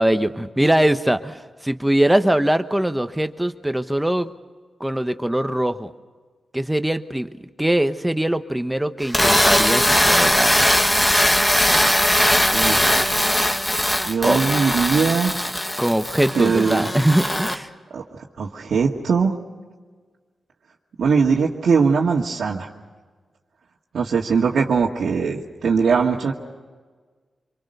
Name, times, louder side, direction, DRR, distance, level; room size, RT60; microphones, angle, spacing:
voice 1, 0.0-4.3 4.8-5.9 6.5-7.3 7.6-10.6 14.2-14.4 15.8-17.7, right 1 dB, 5° right, 9 dB, 1.1 m, -21 dB
sound 1, 9.0-17.5, left 1 dB, 15° left, 1.8 m, -19 dB
voice 2, 14.0-15.4 16.4-16.9 17.9-19.3 21.0-22.7 23.9-26.3, right 5 dB, 75° right, -4 dB, 1.9 m, -20 dB
25.5 x 24.0 x 6.7 m, 1.4 s
cardioid pair, 75°, 0 cm